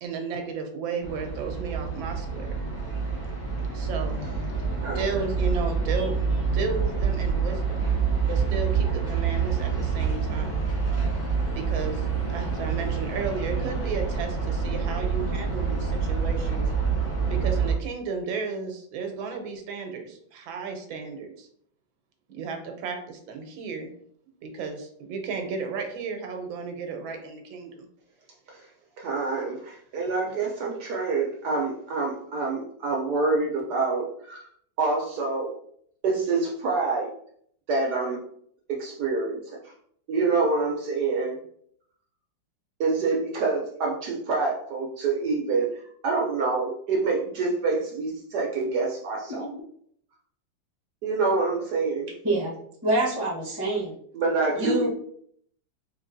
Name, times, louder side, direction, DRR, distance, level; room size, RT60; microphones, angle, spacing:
voice 1, 0.0-2.6 3.7-4.2 4.8-6.1 6.5-7.9 8.3-10.6 11.5-16.6 17.3-21.5 22.3-23.9 24.4-27.9, right 5 dB, 85° right, 4 dB, 1.4 m, -33 dB
sound 1, 1.0-17.7, right 5 dB, 40° left, 2.0 m, -27 dB
voice 2, 29.0-34.4 34.8-35.5 36.0-37.1 37.7-38.2 38.7-39.4 40.1-41.4 42.8-49.5 51.0-52.1 54.1-54.9, right 3 dB, 65° right, -1 dB, 1.1 m, -26 dB
voice 3, 52.8-53.9 54.6-54.9, right 2 dB, 15° right, -5 dB, 0.8 m, -26 dB
4.3 x 3.4 x 2.6 m, 0.65 s
omnidirectional pair, 2.1 m